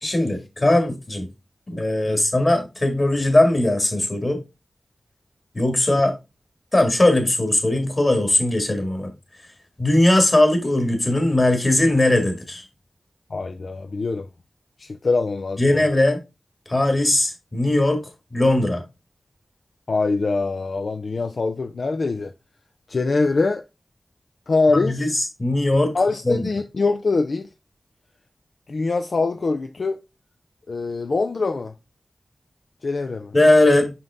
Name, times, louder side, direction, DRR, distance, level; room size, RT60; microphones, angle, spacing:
voice 1, 0.0-1.3 1.7-4.4 5.5-6.1 6.7-9.1 9.8-12.6 15.6-16.2 16.7-18.0 18.3-18.8 24.7-25.9 26.3-26.5 33.3-33.9, left 1 dB, 35° left, 2.2 m, -19 dB
voice 2, 13.3-14.3 14.8-15.8 19.9-22.3 22.9-23.6 24.5-25.2 25.9-27.5 28.7-30.0 30.7-31.7 32.8-33.3, left 3 dB, 70° left, 0.5 m, -23 dB
5.6 x 5.4 x 3.6 m
wide cardioid pair, 80°, 0 cm